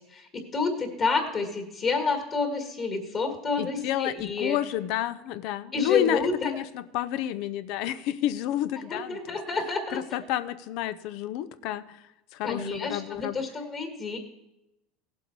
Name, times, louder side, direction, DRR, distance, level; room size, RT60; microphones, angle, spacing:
voice 1, 0.1-4.6 5.7-6.5 8.9-10.0 12.4-14.2, left 4 dB, 35° left, 5 dB, 1.9 m, -29 dB
voice 2, 3.6-9.4 9.9-11.8 12.3-13.4, left 11 dB, 65° left, 15 dB, 0.6 m, -30 dB
16.0 x 7.8 x 4.6 m, 0.90 s
supercardioid pair, 125°, 0 cm